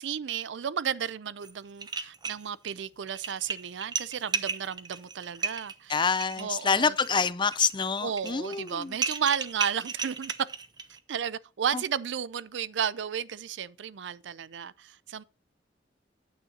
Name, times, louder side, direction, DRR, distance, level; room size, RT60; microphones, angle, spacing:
voice 1, 0.0-6.0 6.4-6.9 8.0-10.3 11.1-15.2, right 8 dB, 70° right, 0.4 m, -33 dB
sound 1, 1.4-1.5 1.8-2.7 3.1-11.0, right 5 dB, 25° right, 0.7 m, -35 dB
voice 2, 5.9-9.0 11.7-11.8, left 5 dB, 25° left, 0.5 m, -27 dB
9.2 x 8.8 x 2.8 m
head